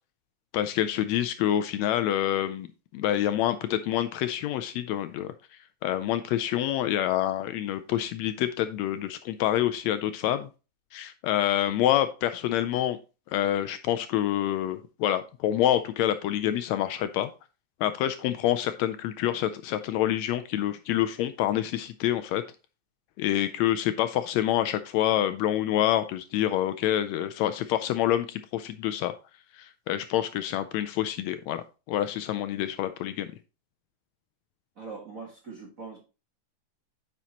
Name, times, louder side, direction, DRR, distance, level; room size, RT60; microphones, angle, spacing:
voice 1, 0.5-2.7 2.9-5.3 5.8-10.5 10.9-13.0 13.3-17.3 17.8-22.4 23.2-29.1 29.5-33.3, left 12 dB, 80° left, 11 dB, 1.7 m, -27 dB
voice 2, 34.8-36.0, right 4 dB, 40° right, -1 dB, 1.3 m, -41 dB
9.2 x 5.7 x 2.9 m, 0.31 s
omnidirectional pair, 3.4 m